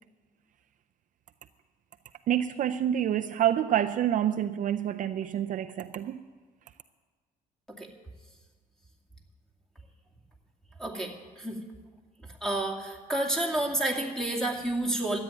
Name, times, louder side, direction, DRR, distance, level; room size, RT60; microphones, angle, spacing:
voice 1, 2.3-6.3, right 10 dB, 50° right, 8 dB, 0.5 m, -27 dB
voice 2, 10.8-11.6 12.4-15.2, right 1 dB, 5° left, 1 dB, 2.4 m, -30 dB
13.0 x 9.1 x 9.2 m, 1.4 s
cardioid pair, 110°, 17 cm